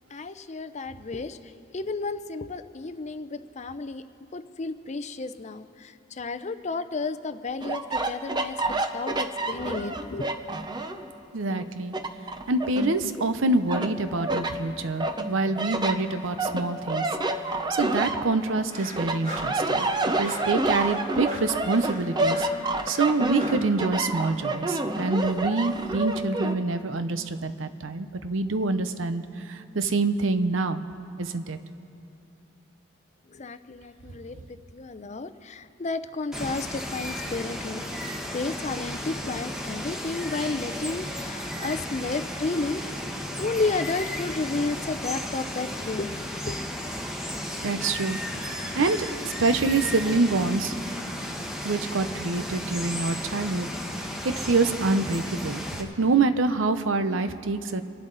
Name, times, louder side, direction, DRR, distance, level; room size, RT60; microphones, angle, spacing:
voice 1, 0.1-1.4 1.7-4.0 4.3-8.6 8.9-10.3 33.3-34.4 34.7-37.8 38.3-42.8 43.4-46.6, left 3 dB, 35° left, 11 dB, 0.6 m, -32 dB
sound 1, 7.6-11.1 11.5-13.3 13.7-14.5 15.0-18.6 18.9-26.5, right 2 dB, 20° right, 0.7 m, -28 dB
voice 2, 11.3-11.9 12.5-17.0 17.7-19.9 20.2-22.5 22.9-30.8 31.2-31.6 47.6-48.2 48.7-50.7 51.6-53.7 54.4-57.8, right 3 dB, 85° right, 11 dB, 0.7 m, -26 dB
sound 2, 18.7-23.7, equal, 45° right, 3.2 m, -40 dB
Water, 36.3-55.8, equal, 5° right, 1.2 m, -34 dB
28.5 x 11.5 x 4.0 m, 2.7 s
head